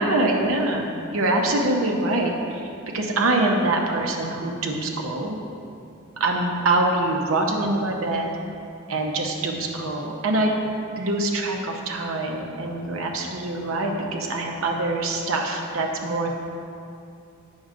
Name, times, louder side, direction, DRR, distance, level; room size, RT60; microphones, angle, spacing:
voice 1, 0.0-5.4 6.2-8.3 8.9-10.5 11.0-16.3, right 2 dB, 75° right, 1 dB, 0.8 m, -24 dB
8.7 x 6.2 x 2.5 m, 2.5 s
head